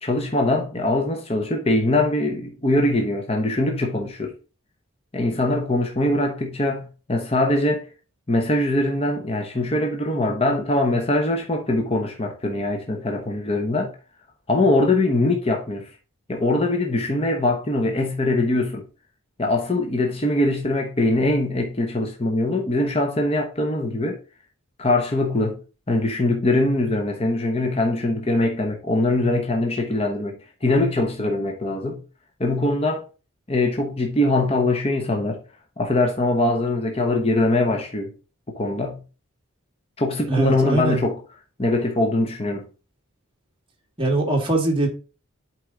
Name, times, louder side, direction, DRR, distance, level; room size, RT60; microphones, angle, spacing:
voice 1, 0.0-4.3 5.1-7.9 8.3-13.9 14.5-15.9 16.3-18.8 19.4-24.2 24.8-25.6 25.9-32.0 32.4-33.0 33.5-35.4 35.8-38.1 38.6-39.0 40.0-41.1 41.6-42.7, left 2 dB, 30° left, 0.9 m, -22 dB
voice 2, 40.3-41.0 44.0-44.9, right 2 dB, 25° right, 1.6 m, -21 dB
8.0 x 4.6 x 3.8 m
head